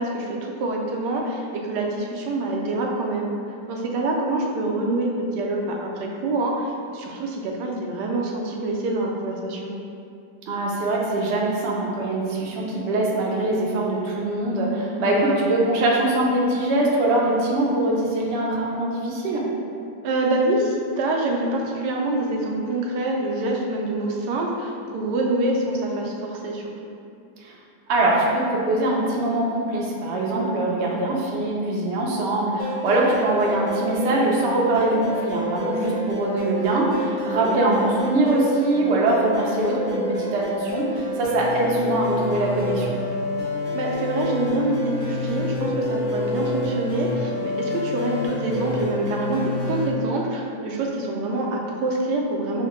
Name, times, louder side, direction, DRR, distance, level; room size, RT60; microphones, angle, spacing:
voice 1, 0.0-3.3 3.7-9.8 15.0-15.5 20.0-26.7 30.8-31.2 37.4-37.9 41.6-41.9 43.7-52.7, right 2 dB, 85° right, -1 dB, 1.2 m, -26 dB
voice 2, 10.5-19.5 27.4-27.5 27.9-42.9, right 2 dB, 65° right, -3 dB, 0.6 m, -23 dB
sound 1, 32.6-49.9, left 1 dB, 50° left, 0.6 m, -28 dB
5.6 x 2.1 x 3.0 m, 2.5 s
omnidirectional pair, 1.8 m